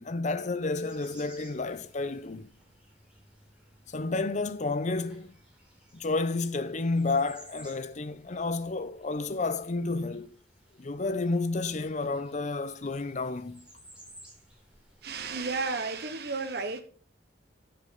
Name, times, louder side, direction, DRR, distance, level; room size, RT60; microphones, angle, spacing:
voice 1, 0.0-2.5 3.9-5.4 5.9-10.3 10.8-13.7, left 3 dB, 40° left, 0.7 m, -31 dB
sound 1, 0.7-15.6, right 1 dB, 5° right, 4.0 m, -57 dB
voice 2, 15.0-16.8, right 4 dB, 60° right, 1.1 m, -32 dB
10.5 x 6.8 x 3.7 m
head